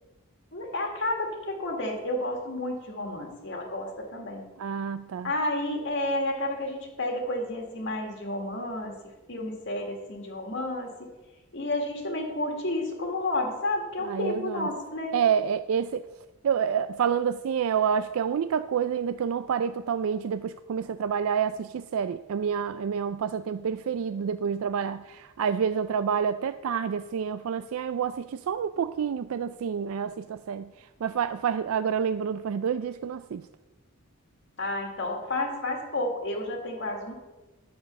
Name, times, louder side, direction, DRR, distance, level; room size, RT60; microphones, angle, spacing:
voice 1, 0.5-4.4 5.2-8.9 9.3-11.1 11.5-15.2 34.6-37.1, left 1 dB, 60° left, 2 dB, 1.9 m, -31 dB
voice 2, 4.6-5.3 14.0-14.7 15.1-16.1 16.4-33.4, right 7 dB, 80° right, 12 dB, 0.4 m, -28 dB
9.9 x 6.9 x 6.5 m, 1.1 s
head